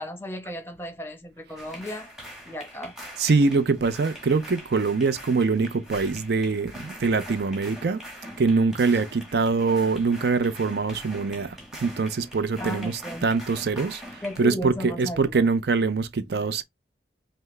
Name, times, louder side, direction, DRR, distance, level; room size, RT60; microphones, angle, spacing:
voice 1, 0.0-2.1 2.5-2.9 12.6-13.3 13.8-13.9 14.2-15.5, left 1 dB, 15° left, 1.0 m, -35 dB
sound 1, 1.6-14.4, equal, 5° right, 1.4 m, -43 dB
voice 2, 3.2-8.0 8.4-16.6, right 4 dB, 65° right, 0.5 m, -24 dB
5.6 x 2.0 x 3.2 m
head